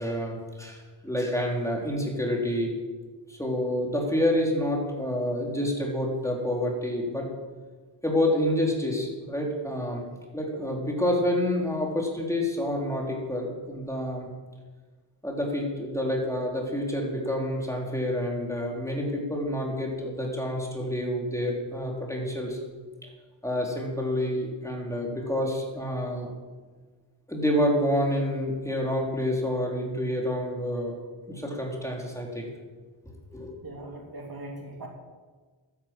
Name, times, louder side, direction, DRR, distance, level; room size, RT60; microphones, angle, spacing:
voice 1, 0.0-2.7 3.3-7.3 8.0-10.0 10.3-14.3 15.2-22.6 23.0-23.1 23.4-26.3 27.3-30.9 31.3-32.5 33.3-33.5, left 1 dB, 5° left, -1 dB, 4.1 m, -28 dB
voice 2, 33.6-34.9, right 2 dB, 45° right, 0 dB, 3.2 m, -40 dB
12.5 x 10.5 x 7.8 m, 1.4 s
cardioid pair, 65°, 50 cm